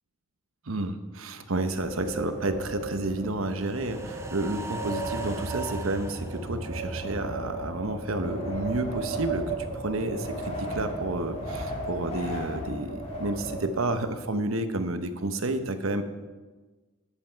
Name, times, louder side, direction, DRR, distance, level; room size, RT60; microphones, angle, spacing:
voice 1, 0.7-16.0, right 2 dB, 80° right, 9 dB, 1.0 m, -30 dB
Wind, 1.6-14.2, right 2 dB, 35° left, 2.9 m, -35 dB
sound 1, 3.6-10.0 10.3-10.4, right 2 dB, 15° right, 0.7 m, -40 dB
15.0 x 10.0 x 4.6 m, 1.3 s
head